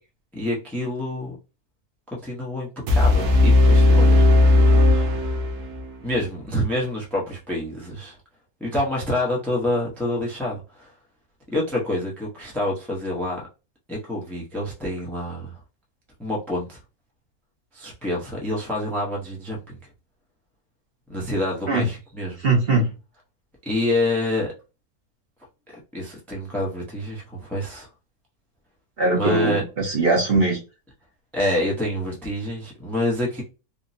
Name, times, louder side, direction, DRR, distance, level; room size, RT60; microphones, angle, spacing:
voice 1, 0.3-1.4 2.1-5.1 6.0-8.2 8.6-10.9 11.5-13.4 13.9-15.6 16.2-16.8 17.7-19.8 21.1-22.4 23.7-24.5 25.7-27.9 29.1-29.6 31.3-33.4, left 1 dB, ahead, 0.4 m, -27 dB
sound 1, 2.9-5.9, left 2 dB, 80° right, 1.2 m, -16 dB
voice 2, 22.4-22.9 29.0-30.6, right 2 dB, 45° right, 0.9 m, -20 dB
3.5 x 2.0 x 2.7 m
omnidirectional pair, 1.6 m